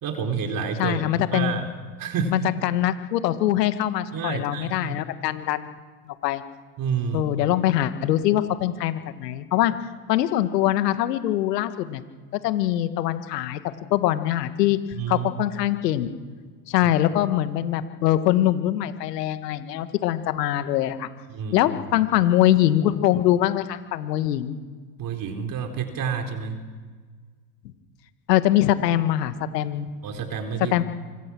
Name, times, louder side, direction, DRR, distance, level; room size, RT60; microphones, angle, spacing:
voice 1, 0.0-1.0 1.3-1.7 2.0-2.3 4.1-4.9 6.8-7.2 15.0-15.4 16.8-16.9 21.3-21.6 21.9-22.0 25.0-26.6 30.0-30.8, right 6 dB, 45° right, 4 dB, 4.0 m, -29 dB
voice 2, 0.8-1.6 2.3-5.8 6.1-6.4 7.1-9.7 10.1-12.0 12.4-13.6 13.9-14.8 15.1-16.1 16.7-21.1 21.5-24.6 28.3-29.9 30.7-30.8, left 13 dB, 75° left, 10 dB, 1.9 m, -23 dB
26.0 x 22.5 x 6.3 m, 1.5 s
hypercardioid pair, 90°, 49 cm